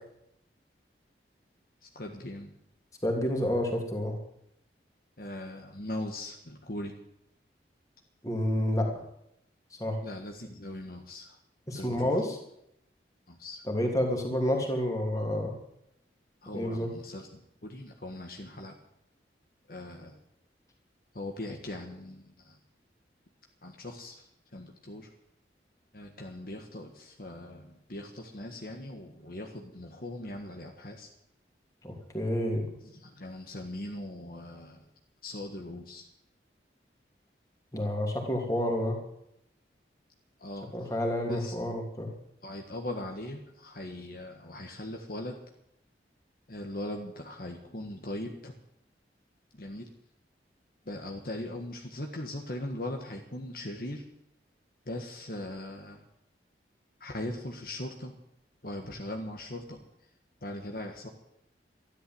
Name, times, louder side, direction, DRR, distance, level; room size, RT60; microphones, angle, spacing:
voice 1, 1.8-2.5 5.2-7.0 10.0-11.4 11.7-12.2 13.3-13.6 16.4-18.7 19.7-20.2 21.1-22.6 23.6-25.1 25.9-31.1 32.8-34.8 35.2-36.1 40.4-40.9 41.3-41.8 42.4-45.4 46.5-48.6 49.5-49.9 50.8-54.0 54.8-56.0 57.0-58.1 58.6-59.8 60.4-61.1, left 1 dB, 55° left, 2 dB, 1.7 m, -40 dB
voice 2, 3.0-4.2 8.2-8.9 9.8-10.0 11.7-12.4 13.7-15.5 16.5-16.9 31.8-32.7 37.7-39.0 40.7-42.1, left 1 dB, 20° left, 1 dB, 3.0 m, -29 dB
13.5 x 11.5 x 7.9 m, 0.77 s
head